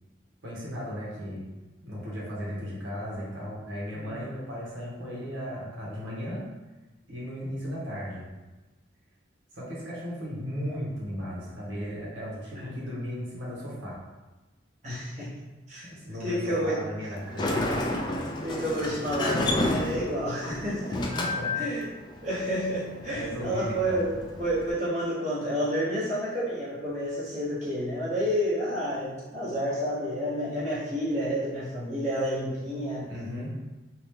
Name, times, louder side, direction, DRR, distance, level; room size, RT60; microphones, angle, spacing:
voice 1, 0.4-1.4 1.8-6.5 7.1-8.2 9.5-14.0 15.9-17.8 21.1-21.7 23.1-24.0 33.1-33.5, equal, 85° right, -7 dB, 1.3 m, -36 dB
voice 2, 3.9-4.3 12.5-12.8 14.8-15.3 15.7-15.9 16.2-16.8 18.4-21.0 21.5-21.9 22.2-33.1, equal, 35° right, -9 dB, 0.9 m, -30 dB
Sliding door, 17.1-24.7, left 2 dB, 25° left, 0.3 m, -31 dB
2.9 x 2.7 x 3.3 m, 1.2 s
head